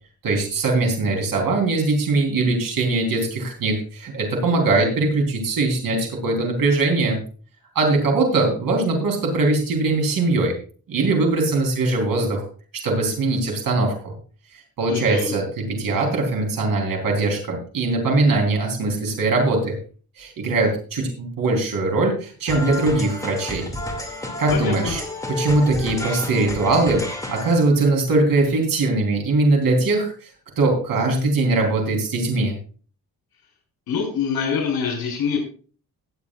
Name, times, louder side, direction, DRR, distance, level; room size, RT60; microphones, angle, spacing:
voice 1, 0.2-7.2 7.8-10.5 10.9-12.4 12.7-14.1 14.5-19.8 20.2-23.7 24.4-25.0 25.3-30.3 30.6-32.6, right 2 dB, 70° right, 1 dB, 3.8 m, -21 dB
voice 2, 14.9-15.4 24.5-24.9 33.9-35.4, left 6 dB, 85° left, 1 dB, 4.2 m, -25 dB
sound 1, 22.5-27.7, left 1 dB, 10° left, 2.4 m, -31 dB
18.5 x 8.6 x 2.5 m, 0.40 s
wide cardioid pair, 145°, 35 cm